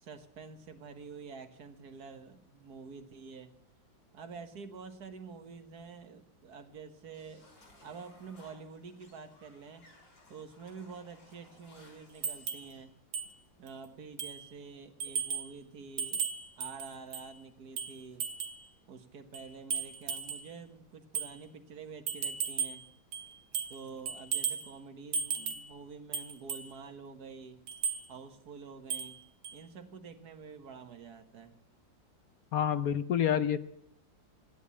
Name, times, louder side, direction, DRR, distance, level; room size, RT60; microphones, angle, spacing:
voice 1, 0.0-3.5 4.1-7.5 7.8-9.9 10.3-12.9 13.6-16.2 16.6-18.2 18.8-22.8 23.7-27.6 28.1-29.2 29.5-31.6, right 5 dB, 60° right, 9 dB, 1.9 m, -48 dB
sound 1, 7.1-12.9, left 2 dB, 75° left, 5.3 m, -60 dB
sound 2, 12.2-12.7 13.1-13.3 13.7-13.8 14.2-14.5 15.0-15.5 16.0-17.3 17.8-18.6 19.3-20.5 21.1-21.3 22.1-22.8 23.1-23.8 24.1-24.7 25.1-25.7 26.1-26.7 27.7-28.0 28.9-29.2 29.4-29.6, right 6 dB, 85° right, 2.1 m, -35 dB
voice 2, 32.5-33.6, left 9 dB, 60° left, 13 dB, 1.0 m, -28 dB
15.5 x 11.0 x 8.3 m, 0.70 s
omnidirectional pair, 2.0 m